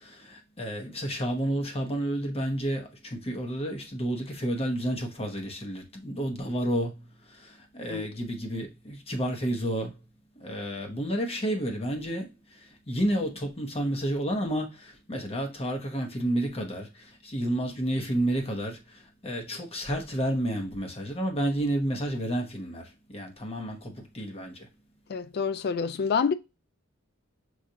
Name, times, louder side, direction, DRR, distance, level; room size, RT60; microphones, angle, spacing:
voice 1, 0.0-7.0 7.7-9.9 10.4-12.3 12.9-16.9 17.2-18.8 19.2-24.6, right 1 dB, 30° left, 0.9 m, -30 dB
voice 2, 25.1-26.3, left 6 dB, 50° left, 0.4 m, -27 dB
6.3 x 2.4 x 2.7 m
head